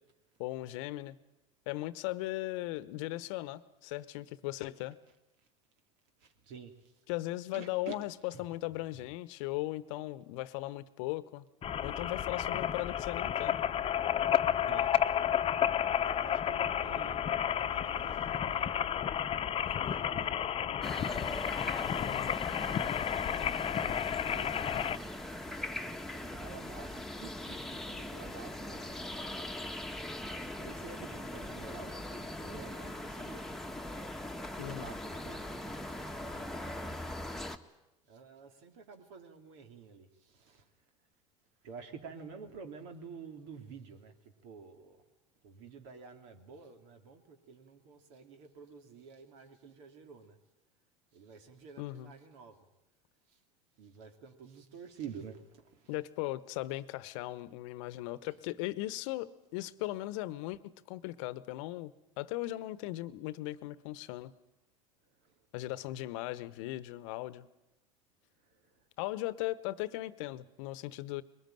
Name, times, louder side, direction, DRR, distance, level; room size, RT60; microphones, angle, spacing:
voice 1, 0.4-1.2 1.7-5.0 7.1-11.4 11.8-13.6 22.0-22.4 34.6-34.9 51.8-52.1 55.9-61.9 62.2-64.3 65.5-67.5 69.0-71.2, left 17 dB, 65° left, 1.1 m, -38 dB
voice 2, 6.2-7.0 7.5-8.0 8.3-8.4 8.9-9.1 14.6-14.9 15.5-18.9 19.7-21.9 22.4-24.8 26.1-29.5 30.1-33.5 34.4-37.1 38.0-40.7 41.6-45.0 45.4-50.4 51.1-52.7 53.3-53.4 53.8-55.9 65.0-65.4 68.4-68.9, right 6 dB, 65° right, 3.1 m, -51 dB
sound 1, 11.6-25.0, left 9 dB, 35° left, 1.1 m, -31 dB
sound 2, 20.8-37.6, left 1 dB, ahead, 1.5 m, -41 dB
21.5 x 19.5 x 9.3 m
hypercardioid pair, 85°, 17 cm